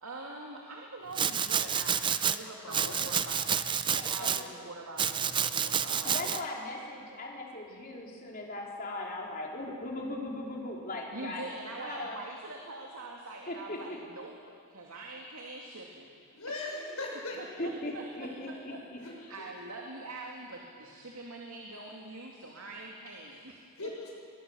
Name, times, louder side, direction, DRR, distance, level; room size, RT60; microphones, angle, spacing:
voice 1, 0.0-3.6 3.9-6.1 11.1-16.4 17.4-23.9, right 2 dB, 80° right, -1 dB, 2.6 m, -44 dB
Domestic sounds home sounds, 1.1-2.4 2.7-4.4 5.0-6.4, right 7 dB, 20° right, 0.5 m, -29 dB
voice 2, 2.4-3.1 16.3-17.6 19.0-19.5 23.7-24.1, left 2 dB, 85° left, -2 dB, 6.5 m, -40 dB
voice 3, 6.0-11.5 11.8-12.2 13.5-14.0 17.6-19.0, left 2 dB, 40° left, -1 dB, 3.8 m, -38 dB
23.0 x 21.5 x 7.1 m, 2.3 s
head